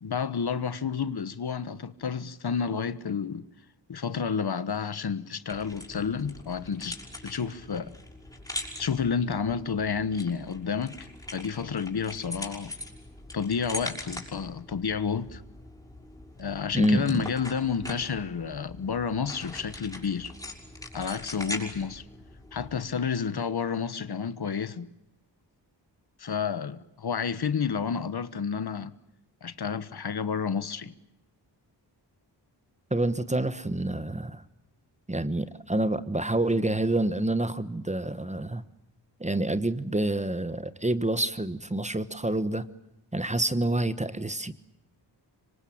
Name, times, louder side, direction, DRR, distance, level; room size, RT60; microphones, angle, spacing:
voice 1, 0.0-3.5 3.9-7.0 7.2-7.9 8.8-12.8 13.3-15.4 16.4-20.3 20.9-22.0 22.5-24.9 26.2-28.9 29.4-30.9, left 6 dB, 60° left, 1.3 m, -30 dB
sound 1, 5.5-22.8, left 1 dB, 10° left, 6.4 m, -42 dB
voice 2, 16.7-17.2 32.9-34.4 35.1-38.6 39.2-42.6 43.1-44.5, right 1 dB, 15° right, 1.2 m, -27 dB
26.0 x 24.5 x 8.7 m
wide cardioid pair, 120°, 43 cm